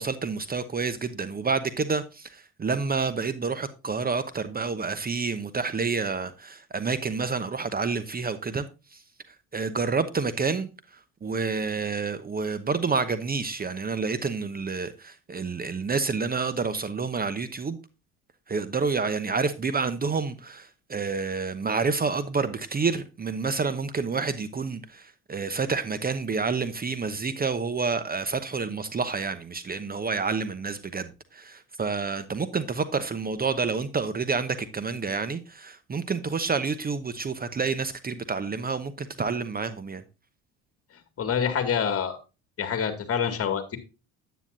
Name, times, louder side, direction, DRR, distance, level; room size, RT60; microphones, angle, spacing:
voice 1, 0.0-8.6 8.9-9.0 9.5-10.7 11.2-17.8 18.5-40.0, right 4 dB, 25° right, 0.9 m, -29 dB
voice 2, 41.2-42.2 42.6-43.8, left 7 dB, 40° left, 2.3 m, -26 dB
9.8 x 9.2 x 2.6 m
hypercardioid pair, 75°, 35 cm